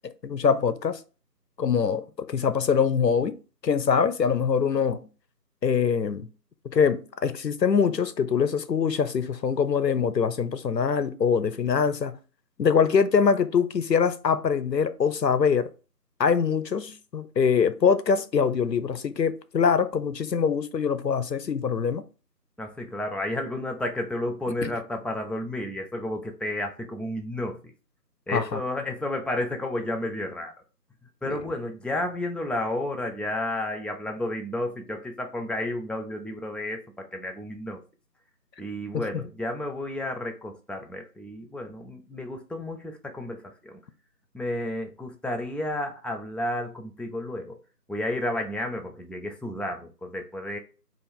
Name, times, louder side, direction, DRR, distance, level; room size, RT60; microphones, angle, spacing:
voice 1, 0.2-1.0 1.6-2.0 2.3-3.4 3.6-5.1 5.6-6.3 6.7-12.2 12.6-15.7 16.2-22.0 24.6-24.7 28.3-28.6 31.2-31.4 38.9-39.2, left 6 dB, 85° left, 0.7 m, -23 dB
voice 2, 22.6-27.6 28.3-30.5 31.2-37.8 38.6-43.7 44.3-47.5 47.9-50.6, left 1 dB, ahead, 0.4 m, -31 dB
4.6 x 2.5 x 3.6 m
figure-of-eight pair, 175°, 48 cm